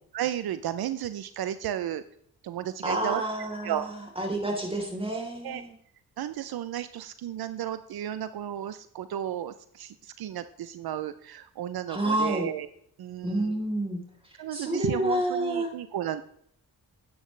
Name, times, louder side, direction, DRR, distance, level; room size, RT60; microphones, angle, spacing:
voice 1, 0.1-2.0 2.4-3.2 3.6-3.8 5.4-5.6 6.2-12.7 13.0-13.6 14.4-16.2, right 11 dB, 75° right, 12 dB, 0.6 m, -33 dB
voice 2, 2.8-5.7 11.9-12.5 13.2-14.0 14.5-15.7, right 1 dB, 15° right, 1 dB, 3.6 m, -29 dB
11.5 x 8.8 x 3.2 m, 0.67 s
cardioid pair, 80°, 37 cm